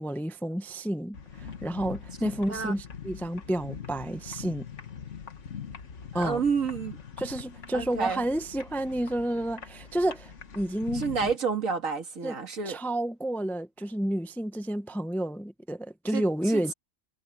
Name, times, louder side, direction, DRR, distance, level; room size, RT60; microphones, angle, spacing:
voice 1, 0.0-4.7 6.1-6.4 7.2-11.0 12.2-12.3 12.6-16.7, right 1 dB, ahead, 0.6 m, -30 dB
sound 1, 1.1-11.4, left 7 dB, 60° left, 1.8 m, -43 dB
voice 2, 6.1-7.0 7.7-8.3 10.9-12.8 16.1-16.6, right 5 dB, 75° right, 2.4 m, -29 dB
omnidirectional pair, 1.4 m